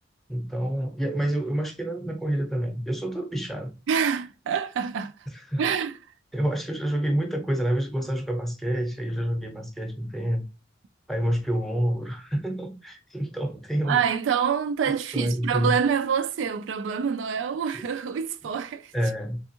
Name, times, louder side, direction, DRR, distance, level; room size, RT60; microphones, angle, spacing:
voice 1, 0.3-3.7 5.3-5.6 6.3-10.4 11.1-14.0 15.1-15.8 17.7-17.8 18.9-19.4, right 1 dB, ahead, 0.7 m, -28 dB
voice 2, 3.9-5.1 5.6-6.0 13.8-18.9, right 7 dB, 70° right, 0.3 m, -26 dB
3.5 x 3.4 x 2.8 m
head